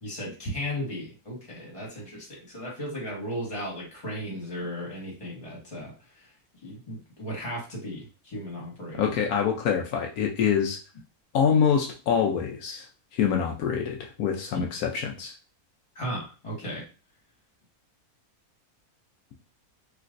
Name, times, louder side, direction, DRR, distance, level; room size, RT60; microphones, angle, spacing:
voice 1, 0.0-6.3 6.6-9.1 14.5-14.6 15.9-16.8, equal, 20° left, -3 dB, 1.4 m, -35 dB
voice 2, 9.0-10.8 11.3-12.8 13.1-15.3, left 7 dB, 80° left, 1 dB, 1.1 m, -25 dB
3.3 x 2.9 x 2.5 m, 0.36 s
omnidirectional pair, 1.6 m